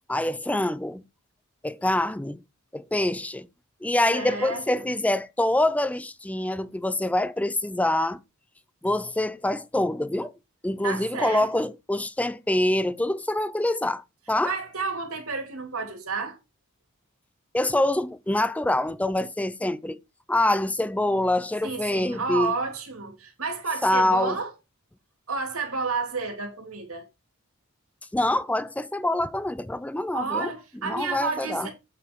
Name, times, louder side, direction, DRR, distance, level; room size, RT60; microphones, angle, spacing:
voice 1, 0.1-1.1 1.6-2.4 2.7-3.5 3.8-8.2 8.8-10.3 10.6-14.6 17.5-20.0 20.3-22.5 23.8-24.4 28.1-30.5 30.8-31.7, left 1 dB, 5° left, 0.4 m, -25 dB
voice 2, 4.1-4.9 10.8-11.7 14.4-16.4 21.6-24.5 25.3-27.1 30.1-31.7, right 4 dB, 70° right, 2.9 m, -31 dB
8.2 x 5.2 x 4.6 m
head